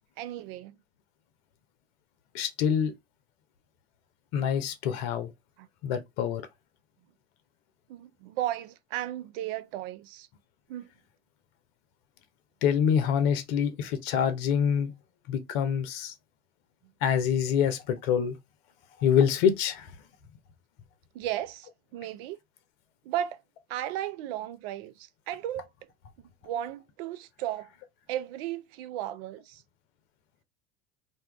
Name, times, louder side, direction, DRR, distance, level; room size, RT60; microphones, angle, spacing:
voice 1, 0.2-0.7 5.6-5.7 7.9-10.3 10.7-10.9 21.1-22.4 23.1-23.4 23.7-25.7 26.4-27.7 28.1-29.6, right 12 dB, 65° right, 0.5 m, -35 dB
voice 2, 2.3-2.9 4.3-5.3 5.8-6.4 12.6-14.9 15.3-16.1 17.0-18.4 19.0-19.9, left 8 dB, 65° left, 0.7 m, -26 dB
2.7 x 2.3 x 3.3 m
hypercardioid pair, 70°, 32 cm